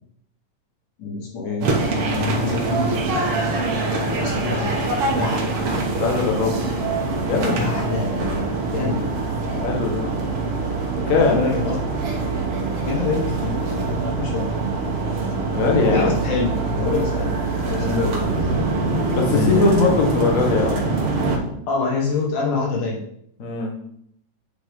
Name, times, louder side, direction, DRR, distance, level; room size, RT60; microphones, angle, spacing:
voice 1, 1.0-1.8 2.0-2.9 4.2-5.6 7.4-8.1 8.7-9.1 11.3-11.8 12.8-14.5 15.8-18.2 19.3-19.9 21.7-23.0, left 4 dB, 80° left, -3 dB, 3.2 m, -26 dB
sound 1, 1.6-21.4, right 3 dB, 60° right, 1.9 m, -24 dB
voice 2, 3.9-4.5 6.0-6.7 7.2-7.6 9.5-10.1 11.0-11.4 15.5-16.1 17.7-18.0 19.1-21.0 23.4-23.7, left 4 dB, 45° left, -1 dB, 1.1 m, -21 dB
8.9 x 4.8 x 3.7 m, 0.71 s
omnidirectional pair, 3.6 m